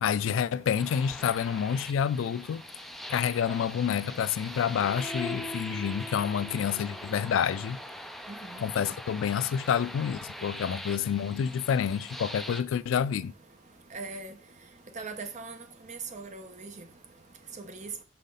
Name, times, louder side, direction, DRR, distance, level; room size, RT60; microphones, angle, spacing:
voice 1, 0.0-2.6 3.1-7.8 8.6-13.3, left 8 dB, 80° left, 0.3 m, -28 dB
sound 1, 0.8-12.6, left 1 dB, ahead, 0.4 m, -41 dB
voice 2, 13.9-14.3 15.0-15.6 15.9-16.7 17.7-17.9, right 4 dB, 40° right, 0.9 m, -39 dB
5.7 x 3.6 x 5.4 m
head